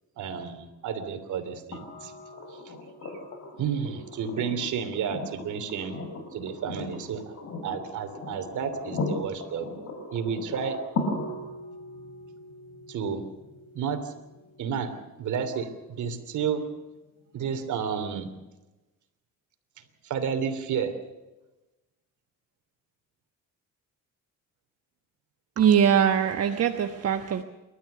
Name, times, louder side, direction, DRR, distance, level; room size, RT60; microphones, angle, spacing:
voice 1, 0.2-2.1 3.0-3.1 3.6-6.0 6.3-7.3 7.6-9.7 10.1-10.8 12.9-13.2 13.7-14.1 14.6-14.9 15.2-16.6 17.3-18.3 20.0-20.9, right 7 dB, 75° right, 9 dB, 3.1 m, -31 dB
sound 1, 1.7-15.7 17.4-17.5, left 2 dB, 60° left, 4.9 m, -38 dB
voice 2, 25.6-27.4, right 8 dB, 55° right, 6 dB, 1.2 m, -22 dB
29.0 x 13.0 x 6.8 m, 1.1 s
cardioid pair, 90°, 30 cm